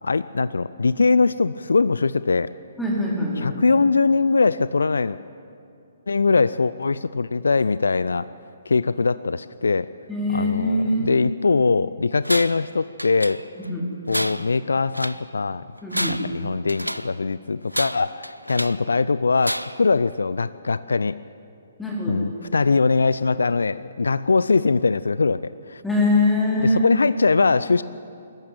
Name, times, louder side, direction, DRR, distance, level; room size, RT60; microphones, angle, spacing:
voice 1, 0.0-2.5 3.4-5.2 6.1-8.3 8.7-9.9 10.3-13.4 14.1-15.6 16.1-21.2 22.1-25.8 26.6-27.8, left 4 dB, 65° left, 16 dB, 0.4 m, -21 dB
voice 2, 2.8-3.6 10.1-11.1 13.6-13.9 15.8-16.2 21.8-22.2 25.8-26.8, left 2 dB, 5° left, -4 dB, 4.1 m, -22 dB
Tools, 12.2-12.7 13.0-13.7 14.1-15.3 15.8-17.2 17.7-18.9 19.4-19.9, equal, 90° right, 0.6 m, -30 dB
21.0 x 14.5 x 9.2 m, 2.5 s
figure-of-eight pair, 130°, 0 cm